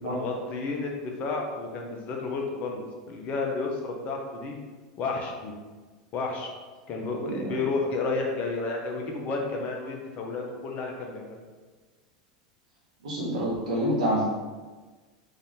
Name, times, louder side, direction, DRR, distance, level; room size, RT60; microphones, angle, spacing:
voice 1, 0.0-4.6 5.0-5.5 6.1-6.5 6.9-11.3, left 3 dB, 45° left, 1 dB, 0.9 m, -31 dB
voice 2, 7.2-7.6 13.0-14.2, equal, 85° right, -7 dB, 1.0 m, -27 dB
3.8 x 2.8 x 3.6 m, 1.4 s
hypercardioid pair, 90°, 4 cm